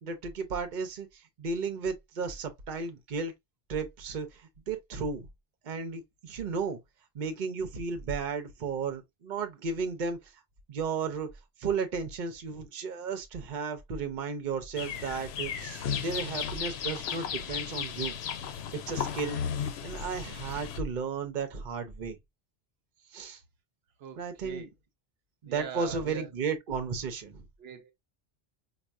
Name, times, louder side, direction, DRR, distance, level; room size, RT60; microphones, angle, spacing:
voice 1, 0.0-3.3 3.7-5.3 5.6-6.8 7.1-10.2 10.7-11.3 11.6-18.2 18.9-22.2 23.1-23.4 24.2-24.7 25.4-27.4, right 5 dB, 55° right, 0.8 m, -34 dB
sound 1, 14.8-20.8, left 8 dB, 85° left, 0.8 m, -35 dB
voice 2, 24.0-24.7 25.4-26.3 27.6-27.9, right 7 dB, 80° right, 0.9 m, -42 dB
4.5 x 2.3 x 2.4 m
omnidirectional pair, 1.0 m